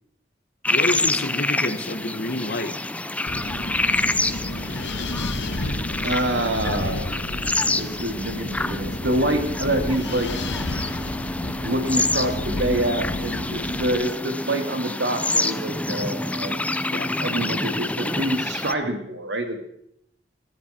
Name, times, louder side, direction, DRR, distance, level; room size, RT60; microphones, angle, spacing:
sound 1, 0.6-18.7, left 2 dB, 10° left, 0.5 m, -27 dB
voice 1, 0.7-2.8 16.9-17.1, left 1 dB, 60° left, 11 dB, 1.3 m, -28 dB
Wind, 3.3-14.0, left 1 dB, 75° left, 1.4 m, -31 dB
voice 2, 6.0-7.3 7.6-10.3 11.6-16.6 17.2-19.6, right 1 dB, 85° right, 5 dB, 2.7 m, -26 dB
sound 2, 8.2-17.8, left 1 dB, 10° right, 2.0 m, -37 dB
22.5 x 13.5 x 4.5 m, 0.74 s
head